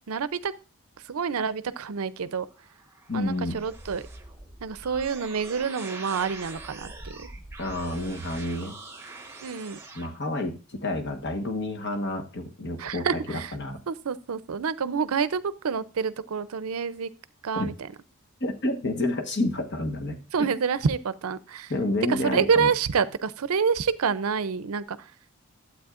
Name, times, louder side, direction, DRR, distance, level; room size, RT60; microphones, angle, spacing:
voice 1, 0.1-0.5 1.0-2.5 3.1-4.0 4.6-7.3 9.4-9.8 12.8-13.5 13.9-17.1 17.4-17.9 20.3-21.7 22.1-25.1, right 6 dB, 75° right, 16 dB, 0.5 m, -28 dB
sound 1, 2.5-10.1, right 3 dB, 10° right, 1.0 m, -43 dB
voice 2, 3.1-3.6 7.6-8.8 9.9-13.1 13.5-13.8 17.6-17.7 18.4-20.2 21.7-22.7, left 2 dB, 55° left, 4 dB, 1.3 m, -29 dB
12.0 x 8.1 x 2.5 m, 0.32 s
head